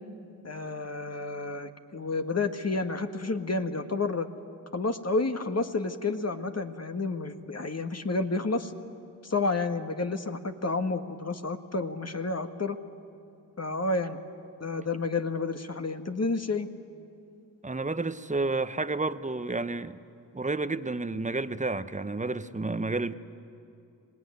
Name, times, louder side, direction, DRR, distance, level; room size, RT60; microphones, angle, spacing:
voice 1, 0.4-4.3 4.7-8.7 9.2-12.8 13.6-14.2 14.6-16.7, left 3 dB, 35° left, 7 dB, 1.7 m, -30 dB
voice 2, 17.6-20.0 20.3-23.1, right 3 dB, 15° right, 13 dB, 1.1 m, -30 dB
25.5 x 19.0 x 9.7 m, 2.6 s
supercardioid pair, 45°, 45 cm